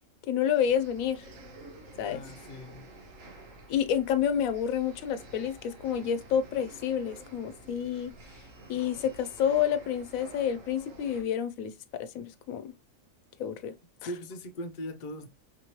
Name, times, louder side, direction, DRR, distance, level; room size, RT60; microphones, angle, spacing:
voice 1, 0.3-1.2 2.0-2.2 3.7-8.1 8.7-12.7 13.4-13.7, left 9 dB, 85° left, 1.0 m, -29 dB
sound 1, 0.6-11.2, right 2 dB, 70° right, 1.4 m, -50 dB
voice 2, 2.1-2.9 14.0-15.3, equal, 50° left, 0.6 m, -40 dB
4.7 x 3.1 x 2.8 m
omnidirectional pair, 1.4 m